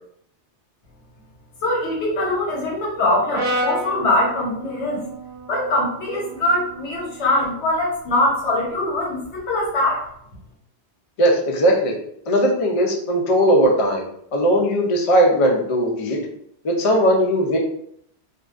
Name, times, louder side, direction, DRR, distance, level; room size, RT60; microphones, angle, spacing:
voice 1, 1.6-5.0 5.5-10.0, left 1 dB, 80° left, -3 dB, 1.1 m, -22 dB
Brass instrument, 3.3-7.6, right 1 dB, 55° right, 0.8 m, -31 dB
voice 2, 11.2-11.9 12.3-14.0 14.3-16.2 16.6-17.6, equal, 55° left, 0 dB, 0.3 m, -18 dB
2.5 x 2.2 x 2.3 m, 0.70 s
omnidirectional pair, 1.2 m